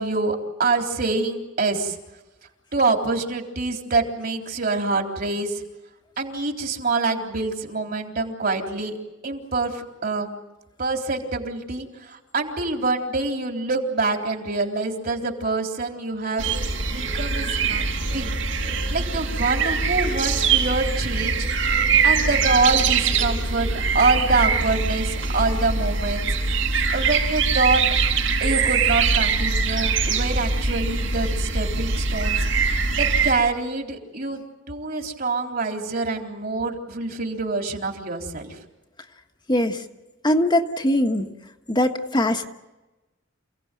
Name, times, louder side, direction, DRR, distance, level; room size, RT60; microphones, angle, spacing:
voice 1, 0.0-2.0 2.7-5.6 6.2-9.0 9.2-10.3 10.8-16.5 16.9-17.8 18.1-18.3 18.6-23.7 23.9-26.3 26.9-27.8 28.4-32.4 33.0-34.4 34.7-38.6, right 3 dB, 50° right, 3 dB, 3.8 m, -25 dB
sound 1, 16.4-33.3, right 4 dB, 80° right, 5.2 m, -23 dB
voice 2, 39.5-39.8 40.2-41.3 41.7-42.5, left 1 dB, 25° left, 4 dB, 1.5 m, -21 dB
29.0 x 17.5 x 9.2 m, 1.1 s
head